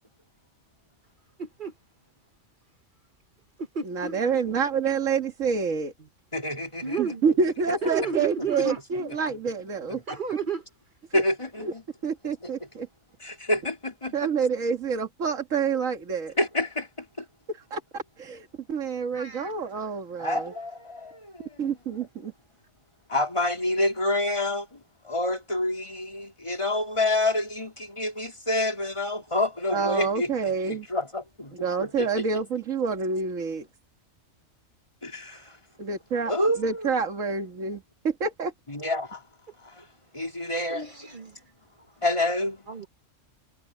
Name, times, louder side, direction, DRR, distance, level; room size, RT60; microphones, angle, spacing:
voice 1, 1.4-1.7 3.7-4.3 6.8-7.2 7.8-9.1 10.1-10.6 19.2-19.5 40.7-40.9 41.1-41.3 42.7-42.9, right 5 dB, 45° right, 1.0 m, -32 dB
voice 2, 3.8-5.9 7.0-10.0 11.1-11.2 11.6-11.7 12.0-12.9 14.1-16.4 17.5-20.5 21.6-22.3 29.7-30.9 31.6-33.6 35.8-36.3 36.6-38.5, right 5 dB, 80° right, 2.2 m, -28 dB
voice 3, 6.3-7.2 8.6-8.7 9.1-9.2 9.9-10.0 11.1-11.8 12.4-12.7 13.2-14.3 16.4-17.3 20.2-21.8 23.1-32.1 35.0-35.6 36.3-36.9 38.7-39.2 39.6-39.9 40.1-41.2 42.0-42.7, left 1 dB, 20° left, 3.7 m, -28 dB
omnidirectional pair, 1.4 m